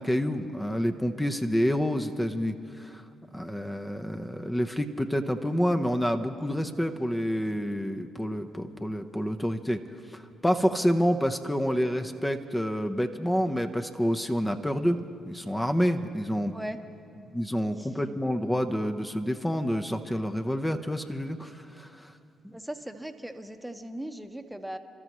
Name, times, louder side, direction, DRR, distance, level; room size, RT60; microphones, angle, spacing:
voice 1, 0.0-3.0 3.3-9.8 10.1-15.0 15.3-16.5 17.3-22.1 22.4-22.6, equal, 10° left, 6 dB, 0.9 m, -28 dB
voice 2, 22.5-24.8, right 1 dB, 5° right, 6 dB, 1.2 m, -38 dB
28.5 x 13.0 x 3.1 m, 2.7 s
hypercardioid pair, 50°, 0 cm